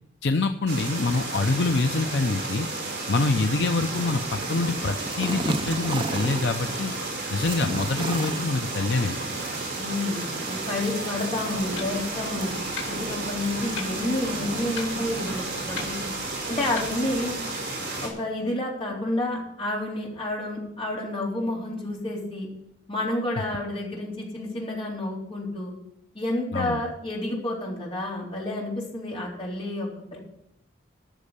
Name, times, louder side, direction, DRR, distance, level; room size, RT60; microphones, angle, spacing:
voice 1, 0.2-2.7 3.1-6.9 7.3-9.2 26.5-26.8, left 3 dB, 60° left, 6 dB, 0.6 m, -25 dB
sound 1, 0.7-18.1, right 2 dB, 55° right, 4.6 m, -32 dB
sound 2, 3.9-15.9, right 2 dB, 25° right, 0.6 m, -37 dB
voice 2, 9.8-12.5 12.9-16.1 16.5-17.4 18.0-22.5 22.9-25.7 26.1-30.2, left 1 dB, 30° left, -4 dB, 3.9 m, -30 dB
Clock, 11.5-17.4, left 5 dB, 80° left, 2.8 m, -42 dB
14.0 x 6.4 x 8.2 m, 0.79 s
head